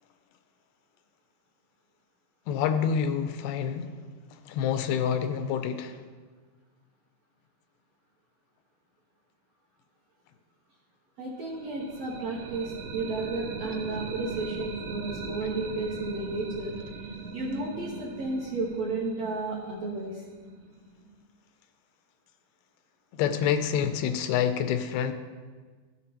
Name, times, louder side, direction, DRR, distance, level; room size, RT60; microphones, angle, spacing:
voice 1, 2.5-4.0 4.3-6.0 13.6-13.8 23.1-25.1, left 8 dB, 90° left, 2.6 m, -27 dB
voice 2, 11.2-16.8 17.3-20.2, right 3 dB, 65° right, 1.6 m, -33 dB
sound 1, 11.4-21.2, right 4 dB, 85° right, 2.7 m, -40 dB
13.0 x 7.4 x 2.9 m
omnidirectional pair, 4.4 m